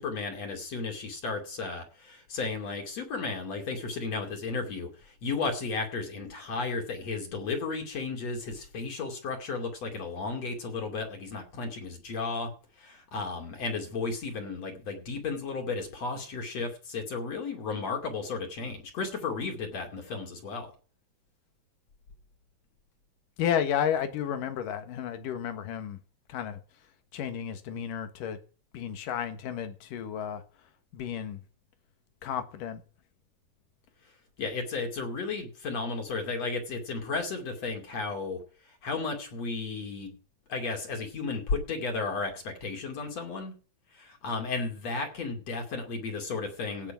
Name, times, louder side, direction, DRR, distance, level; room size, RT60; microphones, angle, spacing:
voice 1, 0.0-12.5 12.8-20.7 34.4-40.1 40.5-43.5 43.9-46.9, left 4 dB, 45° left, 3.4 m, -34 dB
voice 2, 23.4-26.0 26.3-26.6 27.1-28.4 28.7-30.4 30.9-31.4 32.2-32.8, left 9 dB, 65° left, 3.0 m, -32 dB
17.0 x 6.7 x 5.9 m
omnidirectional pair, 4.3 m